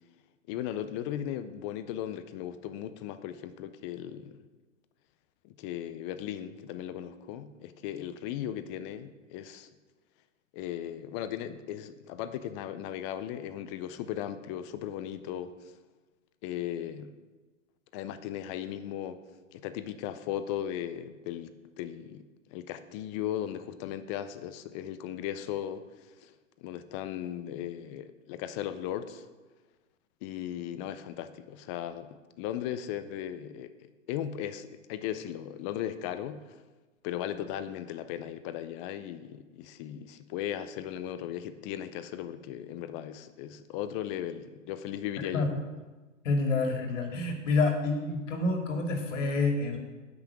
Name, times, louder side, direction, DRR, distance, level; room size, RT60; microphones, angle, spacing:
voice 1, 0.5-4.4 5.4-9.7 10.5-15.7 16.4-17.2 17.9-19.2 19.5-26.3 26.6-29.2 30.2-36.6 37.0-45.6, left 11 dB, 25° left, 11 dB, 0.5 m, -37 dB
voice 2, 46.2-49.8, left 3 dB, 65° left, 3 dB, 2.5 m, -28 dB
9.8 x 6.1 x 7.1 m, 1.3 s
hypercardioid pair, 125°, 39 cm